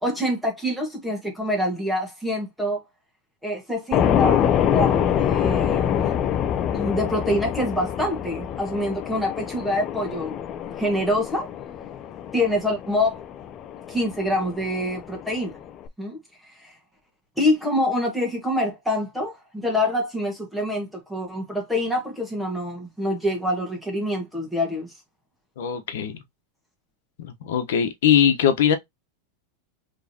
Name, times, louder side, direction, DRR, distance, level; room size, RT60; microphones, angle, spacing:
voice 1, 0.0-2.8 3.4-6.0 6.7-10.3 10.8-11.5 12.3-13.2 13.9-15.5 16.0-16.2 16.6-16.7 17.4-24.9, left 1 dB, ahead, 1.4 m, -26 dB
sound 1, 3.9-15.9, left 9 dB, 30° left, 0.4 m, -25 dB
voice 2, 25.6-26.2 27.2-28.7, left 9 dB, 80° left, 1.0 m, -21 dB
4.7 x 3.2 x 2.8 m
supercardioid pair, 160°, 0 cm